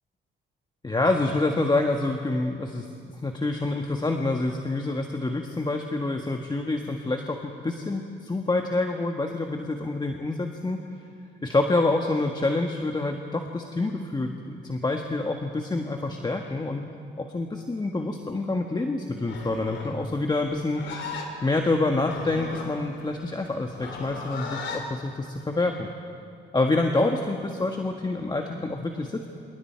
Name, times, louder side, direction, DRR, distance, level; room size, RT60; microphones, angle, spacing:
voice 1, 0.8-10.8 11.4-16.8 17.2-20.8 21.4-25.9 26.5-29.3, left 2 dB, 20° left, 3 dB, 1.5 m, -27 dB
Livestock farm animals working animals, 19.2-24.9, left 4 dB, 65° left, 3.4 m, -37 dB
27.0 x 26.5 x 4.6 m, 2.3 s
cardioid pair, 90°, 20 cm